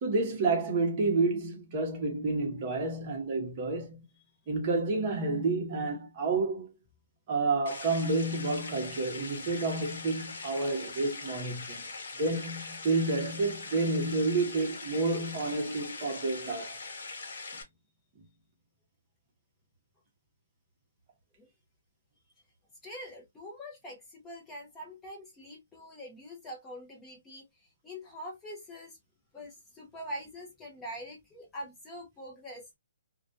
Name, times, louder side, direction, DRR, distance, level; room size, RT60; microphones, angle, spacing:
voice 1, 0.0-4.0 4.5-6.7 7.3-11.8 12.2-16.8, right 3 dB, 30° right, 0.8 m, -29 dB
sound 1, 7.7-17.6, left 3 dB, 65° left, 1.0 m, -42 dB
voice 2, 22.8-29.0 29.3-32.7, equal, 10° left, 0.7 m, -44 dB
2.3 x 2.2 x 2.5 m
hypercardioid pair, 160°, 0 cm